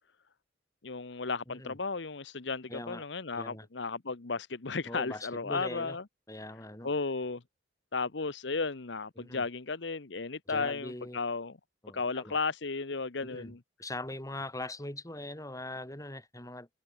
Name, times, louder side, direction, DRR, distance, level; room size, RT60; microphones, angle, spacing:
voice 1, 0.8-6.0 6.8-7.4 7.9-11.6 11.9-13.6, left 4 dB, 65° left, 1.0 m, -34 dB
voice 2, 1.5-1.8 2.7-3.0 3.3-3.7 4.8-6.0 6.3-6.9 9.2-9.5 10.5-11.2 11.8-12.4 13.2-16.7, left 1 dB, 15° left, 3.2 m, -41 dB
head